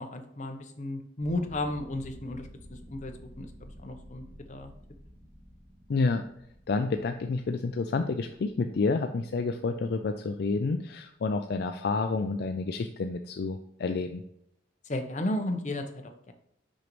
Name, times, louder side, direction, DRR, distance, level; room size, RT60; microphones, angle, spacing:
voice 1, 0.0-2.5 2.9-4.7 14.9-16.3, left 1 dB, 40° left, 5 dB, 0.7 m, -34 dB
sound 1, 1.2-9.6, equal, 30° right, 2.5 m, -51 dB
voice 2, 5.9-6.2 6.7-14.2, left 3 dB, 60° left, 6 dB, 0.4 m, -29 dB
6.3 x 5.2 x 3.0 m, 0.76 s
head